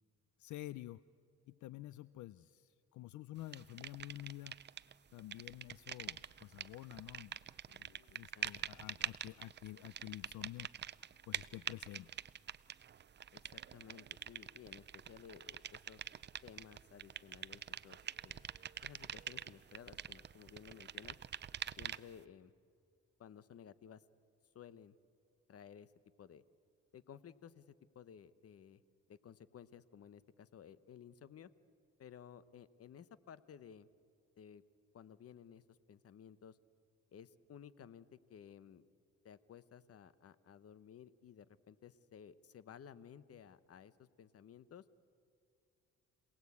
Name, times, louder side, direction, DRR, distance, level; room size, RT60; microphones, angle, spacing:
voice 1, 0.4-1.0 1.5-4.6 5.1-7.4 7.7-10.7 11.3-12.2, left 15 dB, 75° left, 18 dB, 0.5 m, -49 dB
sound 1, 3.5-4.9 5.2-22.2, right 8 dB, 35° right, 0.6 m, -46 dB
voice 2, 13.3-16.0 16.4-18.5 18.8-21.2 21.8-22.5 23.2-24.0 24.5-25.0 25.5-25.9 26.2-26.4 26.9-28.8 29.1-31.5 32.0-33.9 34.4-34.6 34.9-35.6 35.9-36.6 37.1-38.8 39.2-44.8, left 8 dB, 50° left, 16 dB, 0.9 m, -56 dB
27.0 x 18.5 x 8.5 m, 2.3 s
cardioid pair, 90°, 30 cm